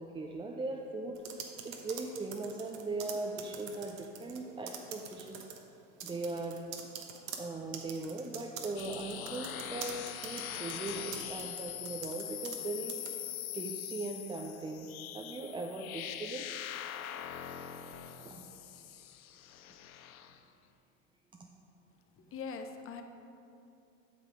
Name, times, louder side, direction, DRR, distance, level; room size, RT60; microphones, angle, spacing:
voice 1, 0.0-5.5 6.0-6.6 7.4-13.2 13.5-16.5 18.2-18.5, right 3 dB, 10° right, 0 dB, 0.4 m, -39 dB
sound 1, 1.2-4.4 4.7-5.6 6.0-12.6 12.9-13.1, right 8 dB, 75° right, 1.1 m, -45 dB
sound 2, 8.8-20.4, left 10 dB, 85° left, 0.6 m, -42 dB
voice 2, 22.3-23.0, left 5 dB, 30° left, 6 dB, 0.8 m, -41 dB
8.3 x 6.6 x 4.9 m, 2.7 s
hypercardioid pair, 85°, 41 cm